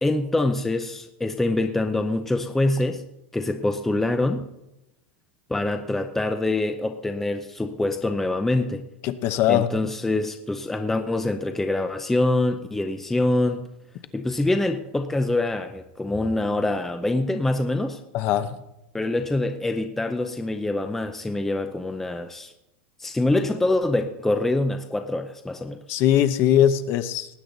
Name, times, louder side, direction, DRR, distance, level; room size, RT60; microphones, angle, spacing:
voice 1, 0.0-3.0 3.3-4.5 5.5-8.9 9.5-13.7 14.1-18.0 18.9-22.5 23.0-26.0, left 2 dB, 5° left, 7 dB, 0.6 m, -25 dB
voice 2, 9.0-9.7 18.1-18.6 25.9-27.4, left 11 dB, 40° left, 12 dB, 0.8 m, -21 dB
19.0 x 8.9 x 4.0 m, 0.90 s
supercardioid pair, 155°, 6 cm